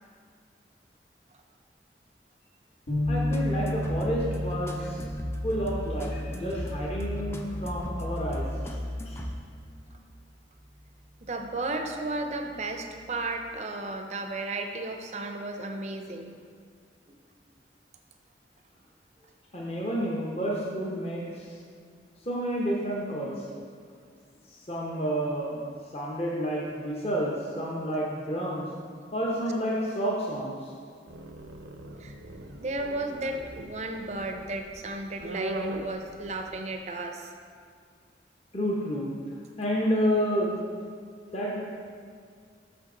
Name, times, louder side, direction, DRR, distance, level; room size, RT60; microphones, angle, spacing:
sound 1, 2.9-9.3, left 1 dB, 75° left, 2.0 m, -34 dB
sound 2, 3.0-9.8, left 1 dB, 15° left, 0.4 m, -35 dB
voice 1, 3.1-5.0 5.4-8.8 9.1-9.2 19.5-21.6 22.2-23.5 24.5-25.6 25.9-28.7 29.1-30.7 38.5-39.1 39.6-40.6 41.3-41.6, equal, 35° left, -4 dB, 0.9 m, -30 dB
voice 2, 11.3-16.3 17.1-17.2 32.0-32.1 32.6-37.3, right 2 dB, 40° right, 4 dB, 0.6 m, -34 dB
sound 3, 31.1-36.7, right 1 dB, 80° right, 0.6 m, -40 dB
8.1 x 6.2 x 3.8 m, 2.1 s
head